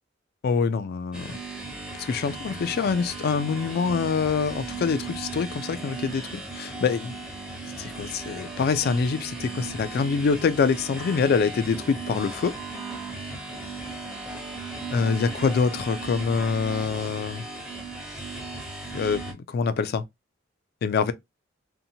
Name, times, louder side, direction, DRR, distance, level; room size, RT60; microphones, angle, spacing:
voice 1, 0.4-1.4 2.0-7.2 7.8-12.5 14.9-17.4 18.9-19.2 19.5-20.0 20.8-21.1, left 5 dB, 55° left, 0.3 m, -25 dB
sound 1, 1.1-19.3, right 3 dB, 5° right, 0.7 m, -37 dB
2.7 x 2.1 x 2.7 m
head